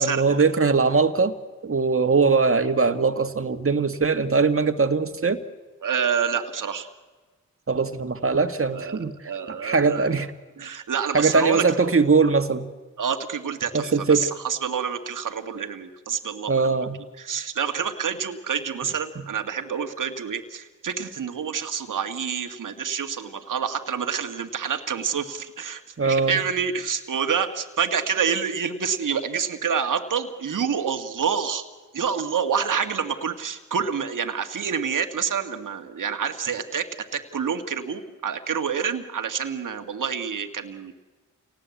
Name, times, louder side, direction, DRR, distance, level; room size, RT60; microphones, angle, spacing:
voice 1, 0.0-1.3 1.6-5.4 7.7-9.1 9.5-10.3 11.1-12.7 13.7-14.3 16.5-17.0 26.0-26.4, right 4 dB, 40° right, 8 dB, 2.0 m, -21 dB
voice 2, 5.8-6.9 8.7-10.1 10.6-11.6 13.0-16.8 17.2-31.6 31.9-40.9, right 7 dB, 65° right, 6 dB, 1.9 m, -27 dB
28.0 x 18.5 x 8.4 m, 1.3 s
supercardioid pair, 45°, 33 cm